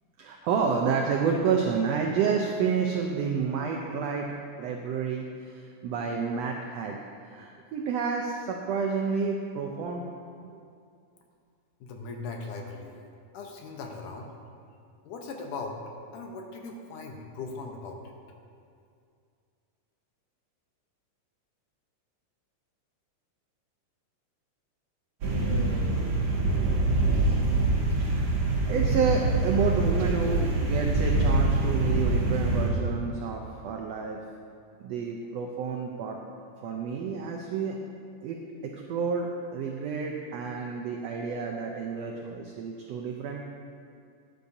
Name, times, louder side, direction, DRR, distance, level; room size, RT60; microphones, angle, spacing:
voice 1, 0.2-4.3 4.6-10.1 28.0-28.4 28.7-34.2 34.8-36.2 36.6-37.8 38.2-38.4 38.6-43.4, right 5 dB, 85° right, 1 dB, 1.4 m, -30 dB
voice 2, 11.8-13.0 13.3-14.3 15.0-15.8 16.1-18.1, left 3 dB, 75° left, 2 dB, 2.4 m, -39 dB
sound 1, 25.2-32.7, right 2 dB, 55° right, 2.3 m, -25 dB
13.0 x 10.0 x 2.7 m, 2.3 s
omnidirectional pair, 3.7 m